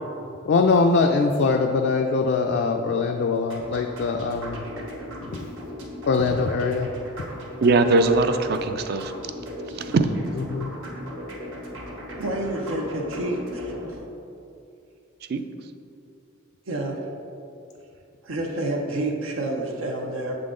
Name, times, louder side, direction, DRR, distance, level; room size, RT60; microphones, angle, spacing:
voice 1, 0.4-4.6 5.2-5.5 6.1-6.9 10.3-10.7, left 4 dB, 55° left, 2 dB, 0.3 m, -22 dB
sound 1, 3.5-14.0, equal, 70° right, 1.1 m, -38 dB
voice 2, 7.6-9.1 9.8-10.3 15.3-15.4, right 3 dB, 50° right, 9 dB, 0.3 m, -21 dB
voice 3, 12.2-13.7 16.7-17.0 18.2-20.4, right 1 dB, 90° right, 0 dB, 0.7 m, -28 dB
7.8 x 3.8 x 3.7 m, 2.6 s
head